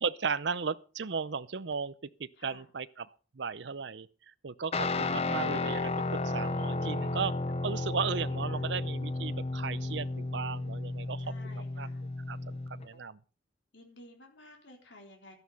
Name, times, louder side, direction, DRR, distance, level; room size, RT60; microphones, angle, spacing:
voice 1, 0.0-1.9 2.2-3.1 3.3-4.1 4.4-7.3 7.6-11.3 11.8-11.9 12.3-13.2, right 5 dB, 70° right, 0.6 m, -35 dB
voice 2, 2.4-2.7 7.7-8.7 11.2-12.1 13.7-15.3, left 2 dB, 75° left, 4.0 m, -54 dB
Guitar, 4.7-12.9, left 2 dB, 35° left, 0.7 m, -33 dB
12.5 x 11.0 x 5.5 m
head